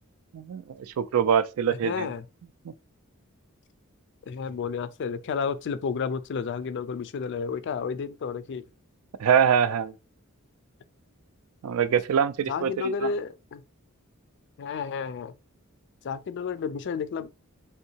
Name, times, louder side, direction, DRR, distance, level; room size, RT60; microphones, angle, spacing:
voice 1, 0.3-2.1 9.2-9.9 11.6-13.1, right 7 dB, 80° right, 0.4 m, -24 dB
voice 2, 1.8-2.2 4.3-8.6 12.5-13.6 14.6-15.3 16.0-17.3, left 6 dB, 55° left, 0.3 m, -31 dB
3.5 x 2.7 x 2.8 m
head